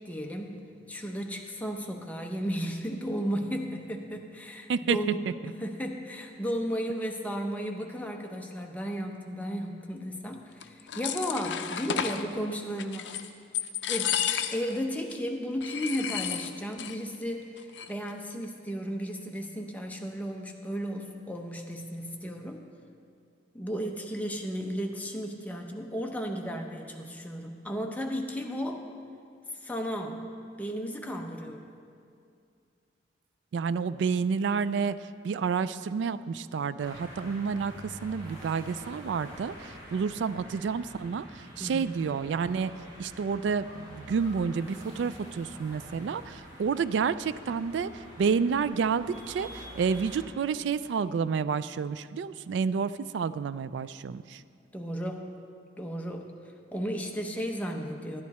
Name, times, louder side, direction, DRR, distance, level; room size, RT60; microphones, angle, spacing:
voice 1, 0.0-0.6 0.9-13.1 13.9-14.2 14.5-17.4 17.9-22.6 23.5-28.8 29.6-30.2 30.6-31.7 41.6-42.0 54.7-55.3 55.8-56.3 56.7-58.2, equal, 10° left, 2 dB, 0.7 m, -34 dB
sound 1, 10.6-12.2 12.8-13.3 13.5-14.8 15.1-15.2 15.6-17.0 17.2-17.3 17.6-18.1, left 9 dB, 70° left, 0.5 m, -32 dB
voice 2, 33.5-35.0 35.2-41.3 41.6-42.7 43.0-47.9 48.2-54.4, right 6 dB, 70° right, 15 dB, 0.3 m, -29 dB
sound 2, 36.8-50.3, equal, 20° right, 2.5 m, -47 dB
11.0 x 10.5 x 4.2 m, 2.3 s
head